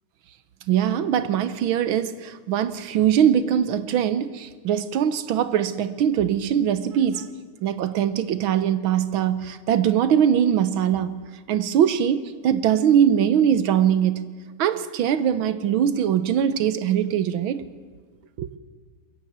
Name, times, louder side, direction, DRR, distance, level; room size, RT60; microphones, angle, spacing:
voice 1, 0.7-7.3 7.6-11.1 11.5-14.3 14.6-17.7 18.4-18.5, right 9 dB, 80° right, 1.7 m, -22 dB
22.0 x 14.0 x 9.3 m
omnidirectional pair, 2.2 m